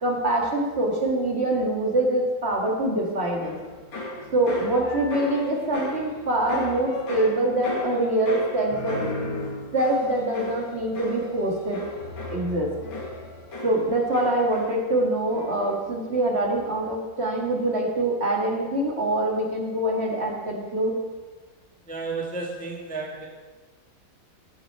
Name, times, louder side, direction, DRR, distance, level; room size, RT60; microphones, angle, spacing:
voice 1, 0.0-3.6 4.3-9.0 9.7-11.8 12.3-12.7 13.6-21.0, right 1 dB, 35° right, 0 dB, 2.1 m, -24 dB
sound 1, 3.4-15.0 15.3-15.8, left 2 dB, 85° left, 2.8 m, -36 dB
voice 2, 21.9-23.3, right 3 dB, 5° left, -1 dB, 1.2 m, -32 dB
16.5 x 7.1 x 4.3 m, 1.3 s
omnidirectional pair, 2.1 m